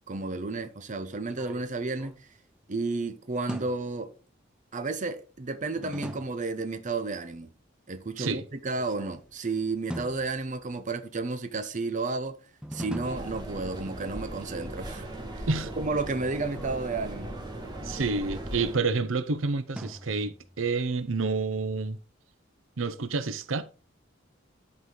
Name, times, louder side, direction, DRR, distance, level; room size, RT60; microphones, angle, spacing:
voice 1, 0.1-2.3 2.7-4.1 4.7-7.5 7.9-12.4 12.7-15.1 15.3-15.5 15.8-17.4, right 3 dB, 40° right, 0.7 m, -32 dB
sound 1, 1.1-2.8 3.5-4.1 5.8-6.6 8.6-9.4 9.9-11.0 12.6-14.0 16.4-18.9 19.8-20.7, equal, 5° right, 0.6 m, -43 dB
sound 2, 13.0-18.8, right 1 dB, 20° right, 1.8 m, -38 dB
voice 2, 17.8-22.0 22.8-23.6, right 4 dB, 75° right, 0.7 m, -29 dB
11.0 x 4.8 x 3.8 m
head